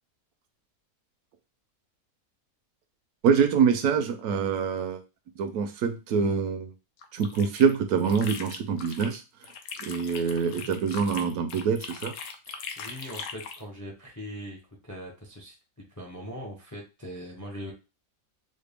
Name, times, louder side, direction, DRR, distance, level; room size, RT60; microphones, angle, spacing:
voice 1, 3.2-5.0 5.4-6.7 7.1-9.2 9.8-12.1, right 6 dB, 75° right, 8 dB, 1.0 m, -25 dB
sound 1, 7.0-9.2 9.4-13.6, left 6 dB, 70° left, 0.9 m, -40 dB
voice 2, 12.5-14.6 14.8-15.6 15.9-17.7, equal, 25° left, 1 dB, 0.4 m, -41 dB
4.1 x 2.2 x 3.4 m, 0.29 s
omnidirectional pair, 1.6 m